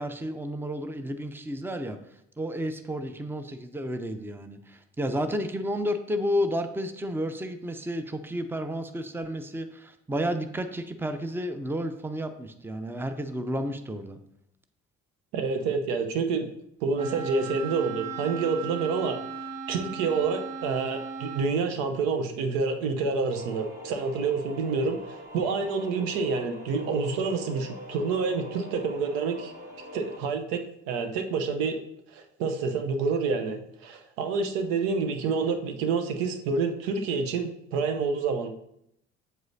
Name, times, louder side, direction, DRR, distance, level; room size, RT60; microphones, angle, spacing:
voice 1, 0.0-2.0 2.4-14.2, equal, 5° right, 9 dB, 0.7 m, -31 dB
voice 2, 15.3-16.5 16.8-19.2 19.7-29.5 29.9-30.6 30.9-31.8 32.1-38.5, right 4 dB, 70° right, 5 dB, 1.0 m, -28 dB
Wind instrument woodwind instrument, 16.9-21.5, right 5 dB, 45° right, 1.6 m, -37 dB
sound 1, 23.3-30.2, equal, 25° right, 2.7 m, -43 dB
7.8 x 7.7 x 2.8 m, 0.76 s
figure-of-eight pair, 50°, 35 cm